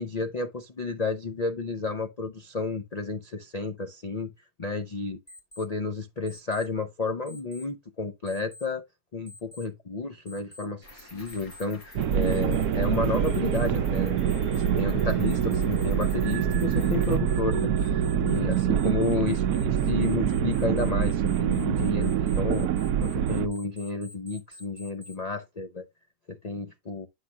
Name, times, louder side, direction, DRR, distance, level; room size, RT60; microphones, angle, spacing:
voice 1, 0.0-4.3 4.6-5.2 5.6-8.8 9.1-14.2 14.5-25.8 26.3-27.1, left 3 dB, 40° left, 0.6 m, -31 dB
Alarm, 5.3-5.6 6.3-6.6 7.3-7.6 8.3-8.6 9.3-9.6 10.3-10.6 11.3-11.6 12.3-12.6 13.3-13.6 14.3-14.6 15.3-25.1, left 1 dB, 25° left, 2.4 m, -47 dB
Cricket, 10.8-17.2, left 1 dB, 70° left, 5.7 m, -49 dB
sound 1, 12.0-23.5, right 9 dB, 85° right, 1.1 m, -25 dB
9.8 x 5.7 x 2.3 m
omnidirectional pair, 1.6 m